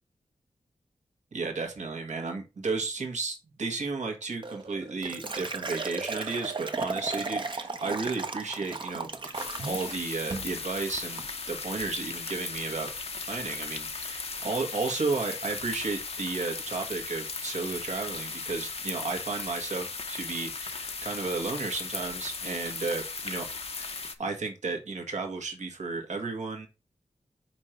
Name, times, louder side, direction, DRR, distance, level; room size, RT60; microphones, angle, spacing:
voice 1, 1.3-12.9 13.3-23.5 23.7-26.7, right 4 dB, 75° right, 3 dB, 1.7 m, -33 dB
Liquid, 4.4-10.0 10.3-10.6 10.9-11.3, right 3 dB, 40° right, 0.9 m, -35 dB
sound 1, 9.3-24.2, left 4 dB, 55° left, 0.9 m, -37 dB
5.9 x 4.6 x 5.0 m, 0.28 s
wide cardioid pair, 75°, 12 cm